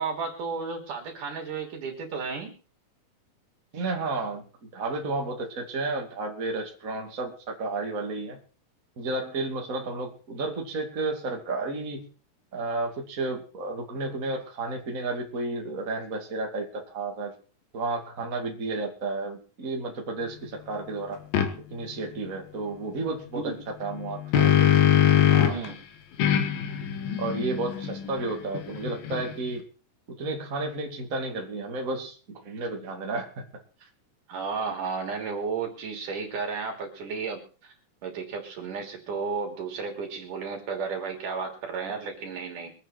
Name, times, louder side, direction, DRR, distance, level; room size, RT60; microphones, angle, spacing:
voice 1, 0.0-2.5 23.4-23.6 25.5-25.8 34.3-37.7 38.0-42.7, right 5 dB, 65° right, 2 dB, 4.5 m, -33 dB
voice 2, 3.7-8.4 9.0-12.1 12.5-17.3 17.7-21.2 21.7-23.5 23.8-24.7 25.3-25.6 27.2-29.6 30.1-33.4, right 3 dB, 25° right, 1 dB, 2.5 m, -32 dB
sound 1, 21.3-21.5 23.9-25.7 26.2-29.5, left 10 dB, 90° left, 3.3 m, -23 dB
23.5 x 9.1 x 4.4 m, 0.37 s
omnidirectional pair, 3.9 m